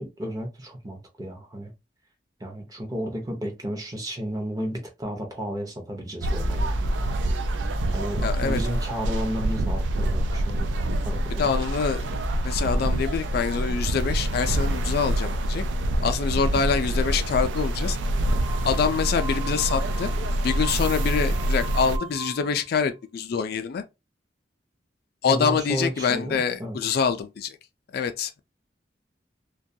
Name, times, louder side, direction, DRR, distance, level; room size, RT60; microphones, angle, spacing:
voice 1, 0.0-1.7 2.4-6.7 7.9-10.7 11.0-11.5 25.3-26.8, equal, 20° right, 0.6 m, -32 dB
sound 1, 6.2-22.0, right 1 dB, 90° right, 0.3 m, -26 dB
sound 2, 6.4-17.0, right 1 dB, 85° left, 0.7 m, -37 dB
voice 2, 8.2-8.6 11.4-12.1 12.4-15.6 16.0-18.0 18.6-20.1 20.4-23.8 25.2-27.6 27.9-28.4, left 6 dB, 60° left, 0.3 m, -25 dB
sound 3, 18.3-22.6, right 4 dB, 60° right, 1.0 m, -39 dB
2.2 x 2.2 x 2.6 m
head